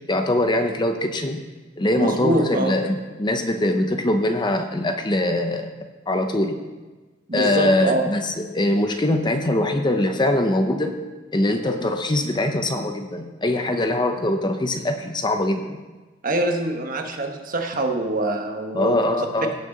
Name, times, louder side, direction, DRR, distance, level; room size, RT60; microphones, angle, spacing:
voice 1, 0.1-1.4 1.8-5.7 6.1-6.6 7.3-11.0 11.3-15.8 18.7-19.5, left 1 dB, 25° left, 6 dB, 0.7 m, -22 dB
voice 2, 1.9-2.7 7.3-8.1 11.8-11.9 16.2-19.2, right 1 dB, 45° right, 4 dB, 1.3 m, -24 dB
17.5 x 6.6 x 3.9 m, 1.3 s
head